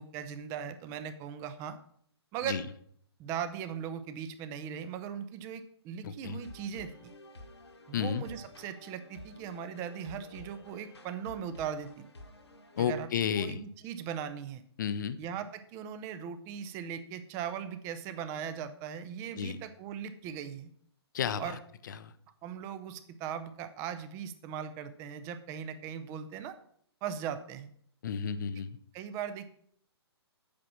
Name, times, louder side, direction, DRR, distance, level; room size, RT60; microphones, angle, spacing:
voice 1, 0.0-1.8 2.3-2.6 3.2-7.1 7.9-12.1 12.8-13.1 13.4-14.6 15.2-20.7 21.4-21.6 22.4-26.6 27.0-27.7 28.9-29.5, right 8 dB, 20° right, 10 dB, 0.6 m, -39 dB
voice 2, 6.0-6.4 7.9-8.2 12.8-13.6 14.8-15.2 19.3-19.6 21.1-21.6 21.9-22.1 28.0-28.8, left 7 dB, 45° left, 13 dB, 0.7 m, -32 dB
sound 1, 6.3-12.9, left 1 dB, 75° left, 1.6 m, -51 dB
8.5 x 6.1 x 6.0 m, 0.64 s
figure-of-eight pair, 130°, 14 cm